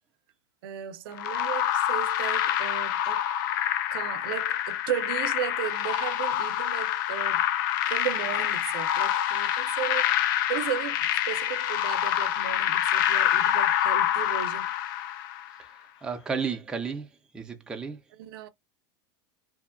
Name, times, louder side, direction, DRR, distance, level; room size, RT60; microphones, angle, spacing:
voice 1, 0.6-3.2 3.9-7.5 7.9-10.1 10.5-14.7 18.2-18.5, right 11 dB, 80° right, 0.4 m, -35 dB
sound 1, 1.2-15.5, left 11 dB, 60° left, 0.5 m, -26 dB
voice 2, 16.0-17.1 17.3-18.0, right 5 dB, 5° right, 0.3 m, -32 dB
2.7 x 2.5 x 2.5 m
supercardioid pair, 160°, 12 cm